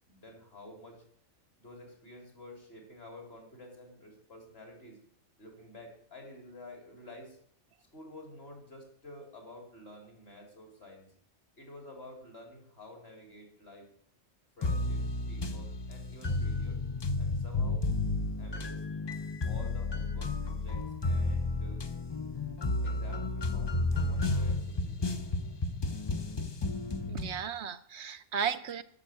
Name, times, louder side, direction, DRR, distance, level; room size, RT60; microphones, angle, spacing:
voice 1, 0.1-1.0 1.6-5.0 5.4-7.4 7.9-11.1 11.6-13.9 14.6-16.8 17.2-17.9 18.4-18.9 19.5-21.9 22.8-25.2, left 1 dB, 55° left, 1 dB, 3.8 m, -50 dB
sound 1, 14.6-27.4, left 2 dB, 30° left, 0.5 m, -32 dB
voice 2, 27.1-28.8, right 7 dB, 70° right, 11 dB, 0.9 m, -35 dB
11.0 x 7.3 x 8.2 m, 0.66 s
omnidirectional pair, 1.3 m